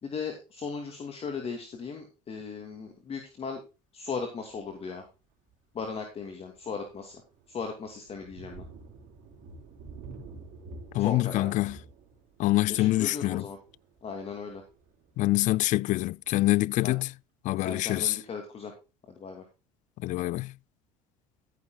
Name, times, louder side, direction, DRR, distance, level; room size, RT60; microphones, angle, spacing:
voice 1, 0.0-3.6 3.9-5.0 5.7-7.2 7.5-8.6 11.0-11.5 12.7-13.6 14.0-14.6 16.8-16.9 17.6-18.7 19.2-19.4, left 5 dB, 40° left, 2.5 m, -37 dB
Thunder, 4.5-4.8 5.4-5.5 6.0-16.6, right 3 dB, 65° right, 4.1 m, -50 dB
voice 2, 10.9-11.8 12.4-13.5 15.2-17.1 17.4-18.2 20.0-20.5, left 17 dB, 55° left, 0.4 m, -25 dB
14.0 x 9.2 x 2.3 m
supercardioid pair, 80°, 15 cm